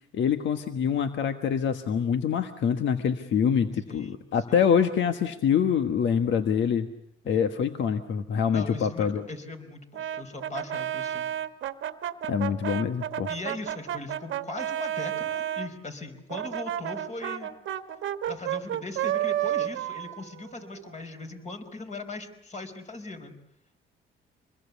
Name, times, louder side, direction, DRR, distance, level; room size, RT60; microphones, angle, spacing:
voice 1, 0.1-6.9 7.3-9.2 12.3-13.3, left 7 dB, 70° left, 8 dB, 1.4 m, -25 dB
voice 2, 3.7-4.2 4.5-4.6 7.2-7.5 8.5-11.3 13.3-17.5 18.3-23.3, left 3 dB, 35° left, 6 dB, 4.7 m, -39 dB
Brass instrument, 9.9-15.7 16.3-21.1, right 11 dB, 75° right, 1.3 m, -31 dB
26.5 x 21.0 x 8.3 m, 0.74 s
cardioid pair, 90°, 20 cm